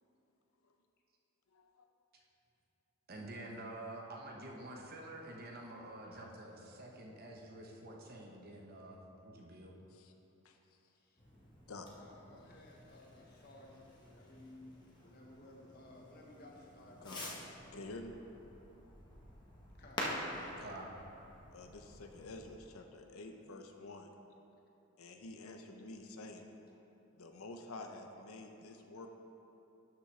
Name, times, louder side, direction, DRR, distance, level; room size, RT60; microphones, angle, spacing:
voice 1, 1.5-1.8 9.9-10.1 10.4-10.6 11.7-11.9 17.0-17.4 17.7-18.1 20.6-20.7 21.5-24.1 25.0-26.5 27.2-29.1, left 2 dB, 85° left, 5 dB, 0.7 m, -49 dB
voice 2, 3.1-9.7 20.6-20.9, right 1 dB, 45° right, 0 dB, 0.9 m, -48 dB
voice 3, 10.9-11.2 12.0-17.4 19.8-20.1, left 1 dB, 45° left, -1 dB, 1.1 m, -57 dB
Fireworks, 11.2-22.6, left 1 dB, 20° left, 1.1 m, -48 dB
12.0 x 6.0 x 3.3 m, 2.9 s
head